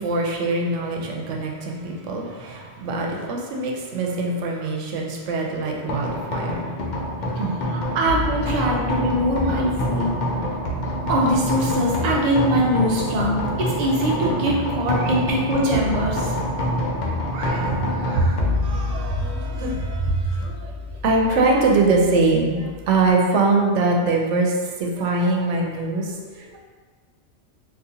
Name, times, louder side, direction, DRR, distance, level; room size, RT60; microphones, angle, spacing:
voice 1, 0.0-6.7 7.4-7.6 15.0-15.2 17.1-20.8 21.0-24.5 24.8-26.6, right 3 dB, 85° right, 0 dB, 0.9 m, -23 dB
sound 1, 5.9-23.1, left 1 dB, 55° left, 0.5 m, -27 dB
voice 2, 7.7-10.1 11.1-16.4, right 1 dB, 50° right, -2 dB, 0.5 m, -22 dB
3.9 x 2.4 x 2.6 m, 1.4 s
omnidirectional pair, 1.2 m